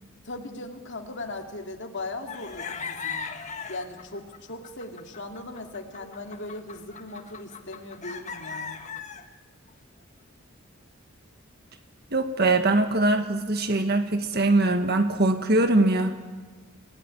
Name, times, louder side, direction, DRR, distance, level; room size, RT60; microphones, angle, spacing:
voice 1, 0.2-3.3 3.6-8.8, left 2 dB, 55° left, 3 dB, 2.4 m, -38 dB
sound 1, 2.3-9.2, left 5 dB, 35° left, 1.5 m, -38 dB
voice 2, 12.1-16.1, right 2 dB, 50° right, 7 dB, 1.5 m, -22 dB
28.5 x 17.5 x 10.0 m, 1.4 s
head